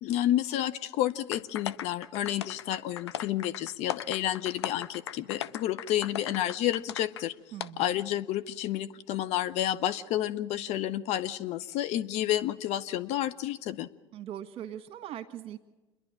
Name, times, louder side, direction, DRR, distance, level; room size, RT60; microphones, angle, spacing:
voice 1, 0.0-7.3 7.8-13.9, left 12 dB, 55° left, 12 dB, 0.8 m, -30 dB
sound 1, 1.3-7.2 7.6-7.7, left 10 dB, 80° left, 0.6 m, -38 dB
voice 2, 7.5-7.9 14.1-15.6, right 11 dB, 45° right, 8 dB, 1.7 m, -40 dB
28.0 x 11.0 x 8.9 m, 1.1 s
hypercardioid pair, 70°, 14 cm